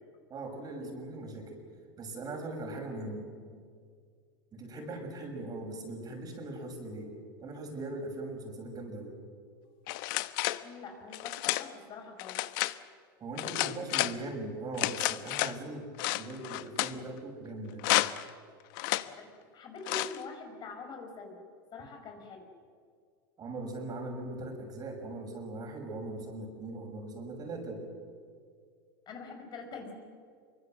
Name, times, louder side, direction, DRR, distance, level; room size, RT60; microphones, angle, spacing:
voice 1, 0.3-1.6 2.0-3.3 4.5-9.2 13.2-15.9 16.1-17.9 23.4-27.8, right 2 dB, 30° right, 3 dB, 6.4 m, -40 dB
sound 1, 9.9-10.6 11.1-11.7 12.2-12.8 13.4-14.2 14.8-15.6 16.0-16.9 17.8-18.3 18.8-19.1 19.9-20.2, left 19 dB, 65° left, 1.0 m, -31 dB
voice 2, 10.6-12.4 19.1-21.4 21.7-22.4 29.1-29.9, left 4 dB, 40° left, 4 dB, 5.1 m, -45 dB
26.0 x 24.0 x 7.8 m, 2.1 s
hypercardioid pair, 110°, 12 cm